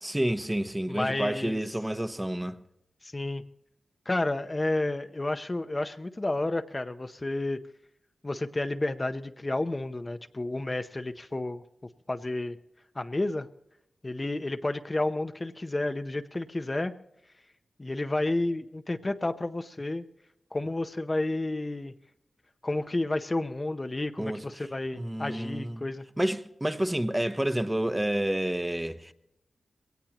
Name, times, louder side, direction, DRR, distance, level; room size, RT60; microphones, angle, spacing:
voice 1, 0.0-2.5 24.2-24.4 24.9-25.8 26.2-29.1, right 1 dB, 10° right, 0.9 m, -29 dB
voice 2, 0.9-1.6 3.0-3.4 4.1-7.6 8.2-11.6 12.1-12.6 13.0-13.5 14.0-16.9 17.8-20.1 20.5-21.9 22.6-26.0, left 2 dB, 30° left, 0.7 m, -31 dB
22.0 x 17.5 x 3.0 m
wide cardioid pair, 70°, 0 cm